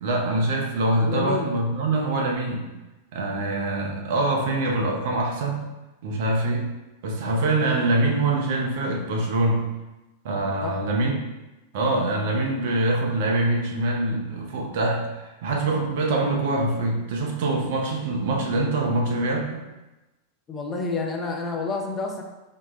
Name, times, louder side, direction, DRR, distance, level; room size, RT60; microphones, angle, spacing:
voice 1, 0.0-2.7 3.1-5.6 6.0-6.7 7.0-9.7 10.2-11.2 11.7-19.6, right 2 dB, 55° right, 0 dB, 0.6 m, -24 dB
voice 2, 1.0-1.6 10.6-10.8 20.5-22.2, left 4 dB, 25° left, 1 dB, 0.5 m, -29 dB
4.2 x 2.1 x 3.1 m, 1.1 s
figure-of-eight pair, 90°, 0 cm